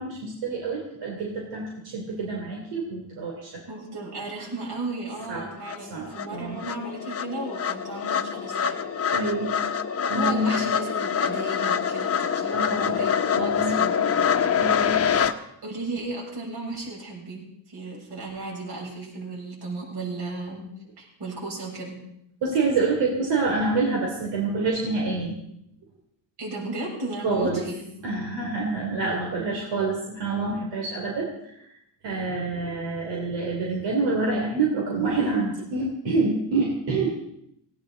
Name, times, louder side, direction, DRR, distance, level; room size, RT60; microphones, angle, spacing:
voice 1, 0.0-3.6 5.3-5.5 5.9-6.6 9.1-9.6 10.1-10.7 12.5-13.0 13.3-13.8 14.5-15.0 22.4-25.4 27.2-27.6 28.0-31.7 32.0-37.1, right 3 dB, 85° right, -1 dB, 3.3 m, -27 dB
voice 2, 3.7-8.8 10.1-14.1 14.7-15.0 15.6-20.7 21.0-22.0 26.4-27.8, right 2 dB, 65° right, -3 dB, 7.4 m, -35 dB
sound 1, 5.2-5.3 5.7-15.3, left 7 dB, 35° left, 1.0 m, -25 dB
19.0 x 17.5 x 4.0 m, 0.75 s
cardioid pair, 120°, 43 cm